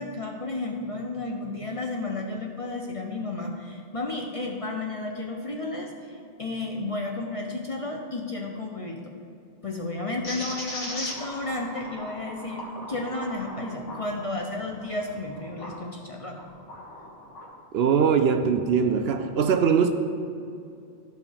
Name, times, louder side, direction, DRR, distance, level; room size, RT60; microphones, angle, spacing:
voice 1, 0.0-9.0 9.6-16.4 17.0-17.1, left 2 dB, 35° left, 1 dB, 0.6 m, -32 dB
sound 1, 10.2-15.8 16.3-17.5, left 1 dB, 90° left, 1.8 m, -38 dB
voice 2, 17.7-19.9, right 6 dB, 65° right, 7 dB, 0.8 m, -21 dB
13.0 x 5.2 x 3.5 m, 2.5 s
omnidirectional pair, 1.2 m